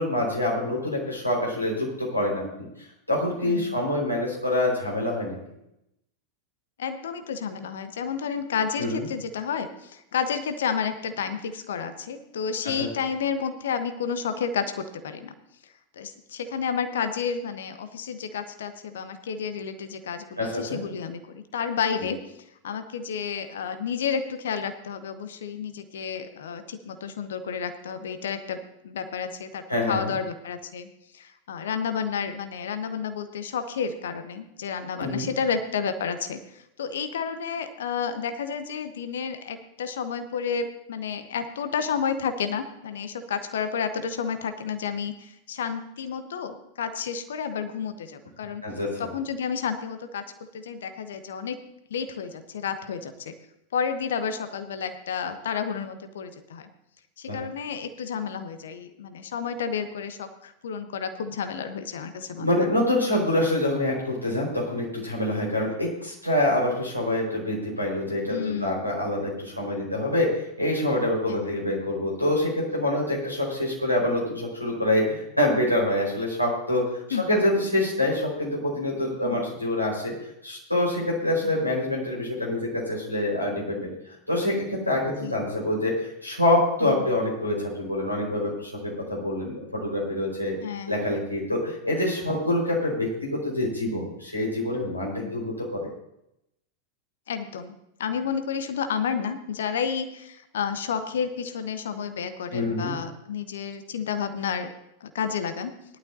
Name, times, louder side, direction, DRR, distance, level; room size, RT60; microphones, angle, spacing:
voice 1, 0.0-2.7 3.1-5.4 8.8-9.0 12.8-12.9 20.4-20.8 29.7-30.1 35.0-35.3 48.6-48.9 57.3-57.4 62.4-80.1 80.4-83.9 84.3-90.6 90.9-95.9 102.5-103.0, left 1 dB, 90° left, -4 dB, 4.8 m, -26 dB
voice 2, 3.4-3.8 6.8-15.3 16.0-22.2 22.6-30.9 31.1-48.6 49.0-51.6 51.9-53.3 53.7-56.7 57.2-62.6 65.6-65.8 68.3-68.8 71.3-71.5 77.1-77.4 79.2-79.4 81.4-81.5 85.2-85.3 86.8-87.1 90.6-90.9 95.2-95.4 97.3-104.7 105.0-105.7, left 6 dB, 60° left, 9 dB, 1.1 m, -31 dB
18.5 x 11.5 x 2.7 m, 0.81 s
figure-of-eight pair, 90°, 0 cm